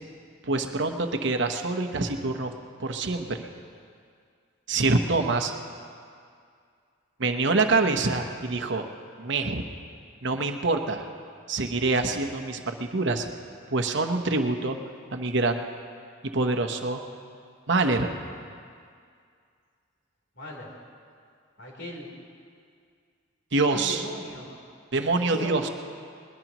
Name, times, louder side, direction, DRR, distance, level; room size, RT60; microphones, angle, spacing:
voice 1, 0.4-2.5 2.8-3.5 4.7-5.5 7.2-8.9 9.2-9.6 10.2-11.0 11.5-13.3 13.7-14.8 15.1-15.6 16.3-17.0 17.7-18.1 23.5-24.0 24.9-25.7, right 3 dB, 60° right, 5 dB, 1.0 m, -25 dB
voice 2, 20.3-20.7 21.6-22.1 23.6-24.5 25.2-25.6, left 1 dB, 60° left, -2 dB, 3.7 m, -38 dB
21.0 x 20.5 x 3.1 m, 2.3 s
head